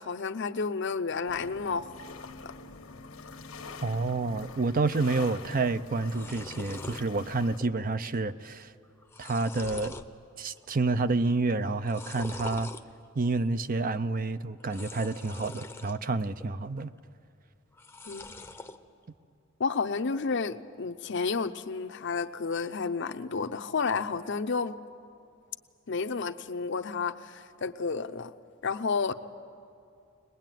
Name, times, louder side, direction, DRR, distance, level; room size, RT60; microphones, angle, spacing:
voice 1, 0.0-2.2 2.4-2.5 18.1-18.3 19.6-24.8 25.9-28.3 28.6-29.1, left 4 dB, 60° left, 9 dB, 0.7 m, -31 dB
sound 1, 1.3-7.6, left 3 dB, 90° left, 1.4 m, -45 dB
voice 2, 3.8-8.7 9.2-9.9 10.4-12.7 13.1-16.9, right 3 dB, 40° right, 12 dB, 0.6 m, -29 dB
sound 2, 5.5-5.6 5.8-7.0 7.5-7.9 8.2-8.3 8.8-10.1 10.6-11.0 11.8-12.8 14.6-16.0 16.4-17.0 17.7-18.8, left 2 dB, 10° left, 0.7 m, -44 dB
22.5 x 20.5 x 9.1 m, 2.5 s
head